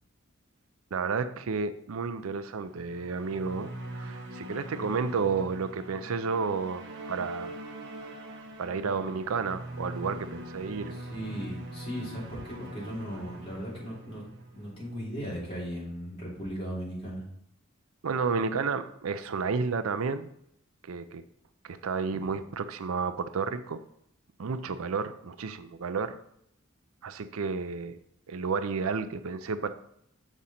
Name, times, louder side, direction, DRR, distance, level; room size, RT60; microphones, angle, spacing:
voice 1, 0.9-7.6 8.6-10.9 18.0-20.3 20.8-21.2 21.6-23.8 24.4-26.2 27.0-28.0 28.3-29.7, right 5 dB, 80° right, 11 dB, 0.5 m, -31 dB
sound 1, 2.6-15.1, right 1 dB, 55° right, 1.1 m, -42 dB
voice 2, 11.0-14.2 14.5-17.2 22.1-22.2, equal, 30° left, -6 dB, 2.9 m, -37 dB
7.2 x 5.0 x 4.2 m, 0.72 s
head